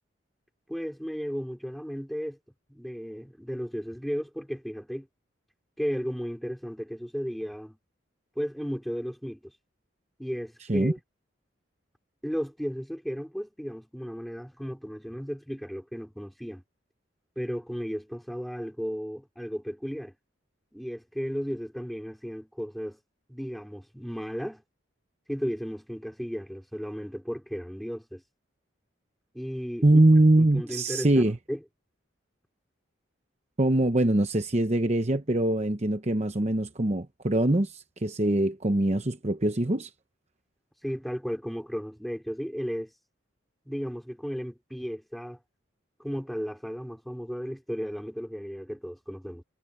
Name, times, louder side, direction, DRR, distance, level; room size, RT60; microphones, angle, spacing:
voice 1, 0.7-2.4 2.7-5.1 5.8-7.8 8.4-9.5 10.2-11.0 12.2-16.6 17.4-20.1 20.7-23.0 23.3-24.6 25.3-28.2 29.3-30.0 30.4-31.2 31.5-31.6 40.8-42.9 43.7-45.4 46.0-49.4, equal, ahead, 2.9 m, -34 dB
voice 2, 29.8-31.4 33.6-39.9, right 1 dB, 35° right, 0.9 m, -23 dB
head